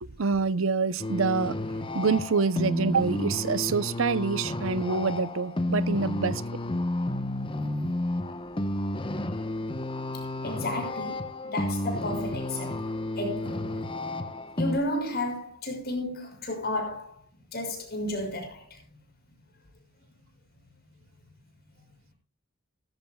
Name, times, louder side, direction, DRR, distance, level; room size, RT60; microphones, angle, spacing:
voice 1, 0.0-1.6 1.9-6.4, right 4 dB, 70° right, 0.7 m, -26 dB
sound 1, 1.0-14.8, left 1 dB, 25° left, 1.0 m, -31 dB
voice 2, 10.4-13.9 14.6-17.2 17.5-18.8, left 1 dB, 50° left, 6.4 m, -33 dB
18.5 x 13.0 x 2.3 m
head